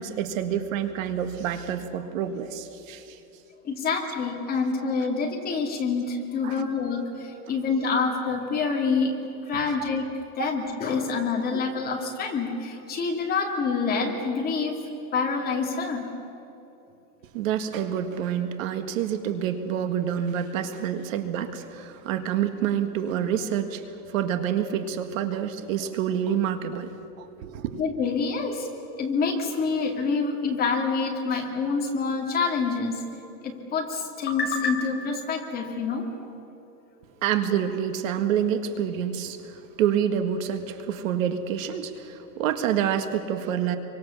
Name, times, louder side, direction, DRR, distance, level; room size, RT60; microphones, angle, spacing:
voice 1, 0.0-3.2 6.4-6.6 9.7-9.8 10.4-10.5 11.5-11.6 17.3-26.9 27.2-27.8 37.2-43.8, right 9 dB, 55° right, 8 dB, 1.8 m, -28 dB
voice 2, 3.6-9.1 9.5-14.8 15.1-16.1 27.8-28.7 29.0-33.0 33.4-36.0, left 4 dB, 20° left, 1 dB, 2.5 m, -27 dB
28.5 x 24.5 x 7.1 m, 2.9 s
supercardioid pair, 165°, 49 cm